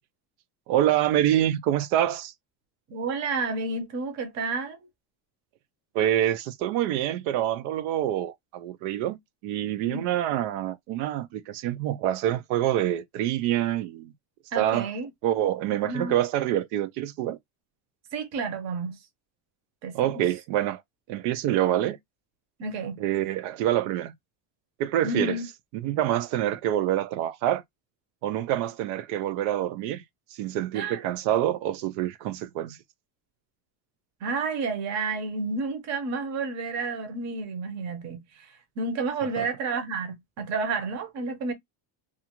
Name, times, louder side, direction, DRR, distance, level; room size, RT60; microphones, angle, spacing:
voice 1, 0.7-2.3 5.9-14.1 14.6-14.9 15.2-17.4 19.9-20.8 21.1-22.0 23.0-24.1 24.8-25.4 25.8-27.6 28.2-30.0 30.3-32.8 39.4-39.5, right 12 dB, 90° right, 0.6 m, -26 dB
voice 2, 2.9-4.8 9.8-10.1 14.5-15.1 15.8-16.2 18.1-19.0 19.8-20.2 22.6-23.0 25.0-25.5 30.7-31.0 34.2-41.5, right 4 dB, 40° right, 0.7 m, -30 dB
2.5 x 2.5 x 2.8 m
cardioid pair, 170°, 43 cm